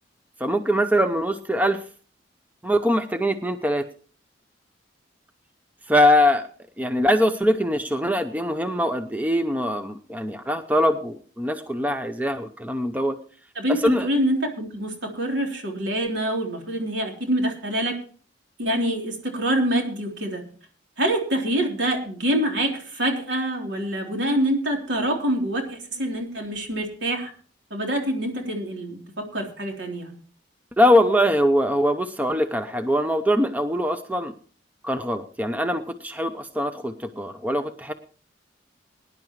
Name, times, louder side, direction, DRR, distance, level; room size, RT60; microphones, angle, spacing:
voice 1, 0.4-1.8 2.6-3.9 5.9-6.4 6.8-13.2 13.7-14.1 30.8-34.3 34.8-37.9, equal, 10° right, 8 dB, 0.6 m, -22 dB
voice 2, 13.6-18.0 18.6-20.4 21.0-27.3 27.7-30.1, right 1 dB, 70° right, 1 dB, 3.5 m, -26 dB
20.5 x 10.5 x 3.1 m, 0.41 s
head